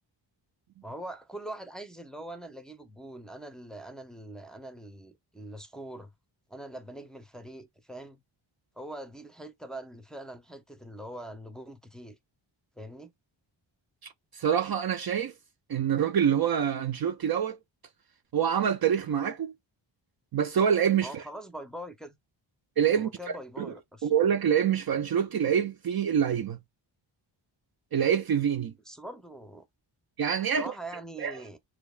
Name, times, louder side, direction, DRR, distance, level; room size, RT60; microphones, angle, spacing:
voice 1, 0.8-6.1 6.5-8.2 8.8-12.2 12.8-13.1 21.0-22.2 22.9-24.1 28.9-29.7 30.6-31.6, right 1 dB, ahead, 0.7 m, -43 dB
voice 2, 14.3-15.3 15.7-17.6 18.3-19.5 20.3-21.2 22.8-23.1 23.6-23.7 24.0-26.6 27.9-28.7 30.2-30.7 31.2-31.3, right 8 dB, 50° right, 0.5 m, -26 dB
6.7 x 2.2 x 2.4 m
cardioid pair, 75°, 48 cm